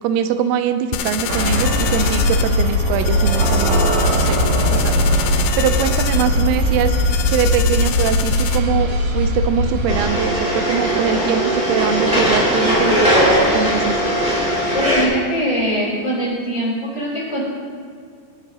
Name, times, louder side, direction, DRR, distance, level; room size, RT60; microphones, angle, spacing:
voice 1, 0.0-4.4 4.7-5.0 5.3-6.9 7.3-14.2, right 9 dB, 90° right, 9 dB, 2.8 m, -22 dB
sound 1, 0.9-8.6, left 11 dB, 85° left, 2.2 m, -28 dB
sound 2, 1.3-9.9, left 1 dB, 65° right, 3.7 m, -19 dB
sound 3, 9.9-15.0, equal, 5° right, 0.8 m, -18 dB
voice 2, 14.7-17.4, right 1 dB, 20° left, -8 dB, 2.6 m, -22 dB
16.5 x 9.2 x 2.8 m, 2.2 s
omnidirectional pair, 5.1 m